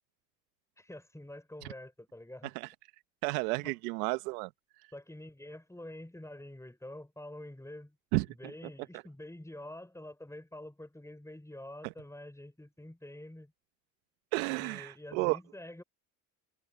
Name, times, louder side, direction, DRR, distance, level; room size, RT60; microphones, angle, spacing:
voice 1, 0.8-2.5 3.6-3.7 4.9-8.0 8.3-13.5 14.5-15.8, left 1 dB, 5° left, 6.4 m, -47 dB
voice 2, 3.2-4.5 8.1-8.3 8.9-9.0 11.8-11.9 14.3-15.4, right 23 dB, 90° right, 1.0 m, -32 dB
hypercardioid pair, 60°, 43 cm